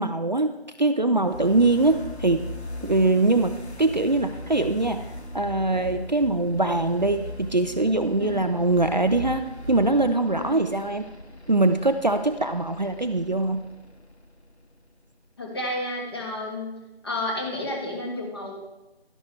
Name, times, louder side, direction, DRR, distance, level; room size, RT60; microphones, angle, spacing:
voice 1, 0.0-2.5 2.8-5.1 5.3-9.4 9.7-11.1 11.5-13.6, right 2 dB, 45° right, 8 dB, 0.5 m, -22 dB
sound 1, 1.2-15.1, left 1 dB, 90° left, 2.0 m, -39 dB
voice 2, 10.3-10.6 15.4-18.5, left 1 dB, 25° left, -1 dB, 1.6 m, -31 dB
12.0 x 10.5 x 3.3 m, 1.0 s
figure-of-eight pair, 170°, 32 cm